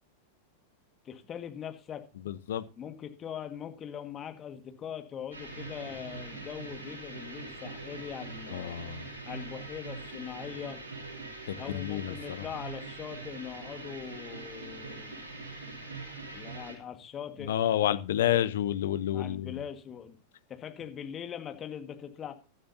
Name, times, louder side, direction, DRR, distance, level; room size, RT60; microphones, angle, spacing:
voice 1, 1.1-2.1 2.8-8.8 9.2-10.8 11.6-15.2 16.3-17.5 19.1-20.2 20.5-22.3, left 8 dB, 25° left, 1.8 m, -41 dB
voice 2, 2.3-2.6 8.5-9.1 11.5-12.5 17.5-19.6, left 12 dB, 60° left, 0.9 m, -29 dB
sound 1, 5.3-16.7, right 3 dB, 70° right, 4.8 m, -43 dB
15.0 x 12.0 x 2.8 m
figure-of-eight pair, 90°, 0 cm